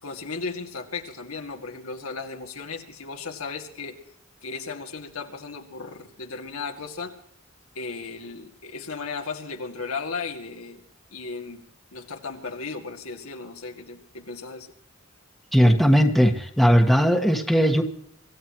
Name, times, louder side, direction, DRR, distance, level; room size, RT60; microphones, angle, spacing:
voice 1, 0.0-4.0 4.4-7.2 7.7-10.8 11.1-11.6 11.9-14.7, left 4 dB, 85° left, 3 dB, 2.3 m, -35 dB
voice 2, 15.5-17.8, equal, ahead, 2 dB, 1.4 m, -18 dB
25.5 x 15.0 x 3.0 m, 0.69 s
head